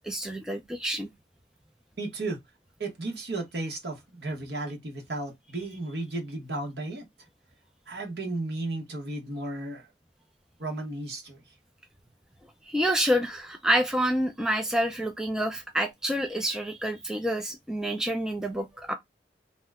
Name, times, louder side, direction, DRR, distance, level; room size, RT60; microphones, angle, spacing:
voice 1, 0.0-1.1 12.7-18.9, equal, 5° right, 0.3 m, -28 dB
voice 2, 2.0-2.4 2.8-7.1 7.9-9.9 10.6-11.4, right 2 dB, 70° right, 1.1 m, -34 dB
2.8 x 2.1 x 3.4 m
head